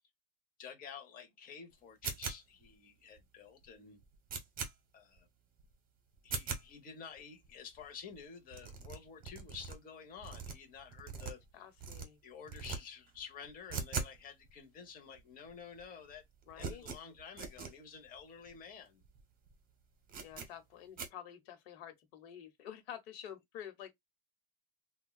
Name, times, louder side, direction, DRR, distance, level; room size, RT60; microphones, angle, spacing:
voice 1, 0.6-4.0 4.9-5.3 6.2-11.4 12.2-16.2 16.6-19.0, left 6 dB, 30° left, 0.8 m, -50 dB
sound 1, 2.0-2.7 3.2-3.3 3.6-3.7 4.0-4.7 5.2-5.3 5.6-5.7 6.2-6.7 7.2-7.3 7.4-7.5 7.8-7.9 8.1-8.2 8.5-9.8 10.2-11.5 11.8-12.1 12.5-12.8 13.1-14.2 14.4-14.5 15.2-15.3 15.5-15.8 16.1-17.7 18.2-18.3 18.5-18.6 19.0-19.2 19.5-19.6 20.1-20.5 21.0-21.1, right 5 dB, 30° right, 0.9 m, -41 dB
voice 2, 11.5-12.2 16.5-16.8 20.2-23.9, left 9 dB, 80° left, 1.0 m, -49 dB
3.5 x 2.2 x 2.3 m
supercardioid pair, 125°, 30 cm